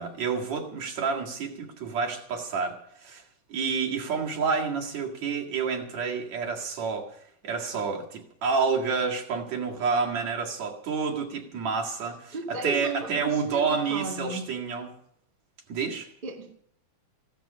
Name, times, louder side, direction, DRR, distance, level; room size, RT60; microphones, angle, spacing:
voice 1, 0.0-3.2 3.5-7.1 7.4-14.9 15.7-16.1, right 5 dB, 65° right, 3.2 m, -29 dB
voice 2, 12.3-14.5 16.2-16.6, right 3 dB, 20° right, 1.8 m, -34 dB
16.5 x 12.5 x 6.2 m
omnidirectional pair, 3.5 m